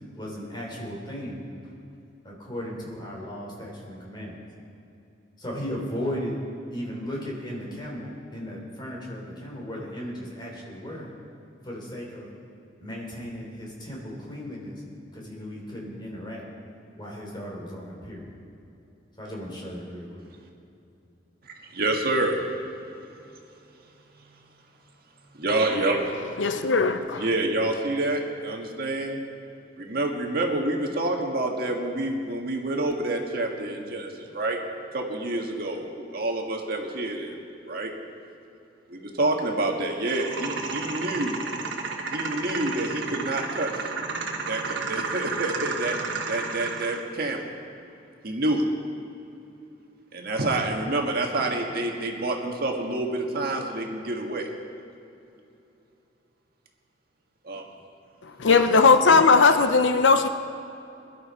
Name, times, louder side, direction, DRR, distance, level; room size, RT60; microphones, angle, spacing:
voice 1, 0.2-1.4 2.2-4.4 5.4-6.4 6.7-11.1 11.6-12.3 12.8-14.8 15.1-16.4 17.0-18.3 19.2-20.3, equal, 25° left, 3.5 m, -36 dB
voice 2, 21.7-22.4 25.4-26.0 27.2-29.2 29.8-34.6 34.9-37.3 37.6-37.9 38.9-41.4 42.1-43.7 44.5-46.0 46.3-47.5 48.2-48.6 50.1-54.5 57.4-57.6 58.5-58.6, right 2 dB, 55° right, 1.6 m, -27 dB
voice 3, 26.4-27.3 58.4-60.3, left 4 dB, 80° left, 0.7 m, -18 dB
sound 1, 40.1-47.1, right 4 dB, 85° right, 1.4 m, -32 dB
22.0 x 11.5 x 4.3 m
head